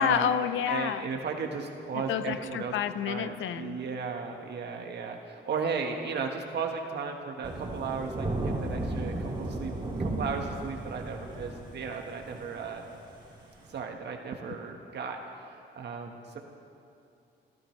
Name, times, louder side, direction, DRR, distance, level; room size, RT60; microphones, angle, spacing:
voice 1, 0.0-1.1 1.9-3.8, left 9 dB, 75° left, 12 dB, 0.8 m, -29 dB
voice 2, 0.7-2.7 3.1-9.7 10.0-12.8 13.7-15.2 15.7-16.4, right 5 dB, 60° right, 3 dB, 1.5 m, -35 dB
Thunder / Rain, 7.4-13.8, right 2 dB, 25° right, 4.1 m, -34 dB
27.0 x 15.0 x 3.3 m, 2.6 s
cardioid pair, 90°, 20 cm